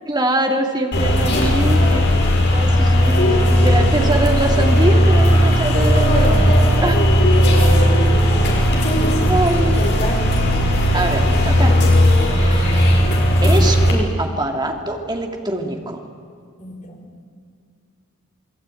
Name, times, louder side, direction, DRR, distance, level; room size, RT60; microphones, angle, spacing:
voice 1, 0.0-2.0 2.5-7.0 9.3-9.9 10.9-11.9 12.3-16.0, right 1 dB, 20° right, 2 dB, 2.8 m, -23 dB
sound 1, 0.9-13.9, equal, 55° left, 6.2 m, -15 dB
voice 2, 7.3-7.9 8.2-8.4 9.0-9.3 9.6-10.2 16.6-17.0, left 1 dB, 35° left, 1 dB, 5.5 m, -31 dB
29.0 x 20.5 x 9.3 m, 2.3 s
head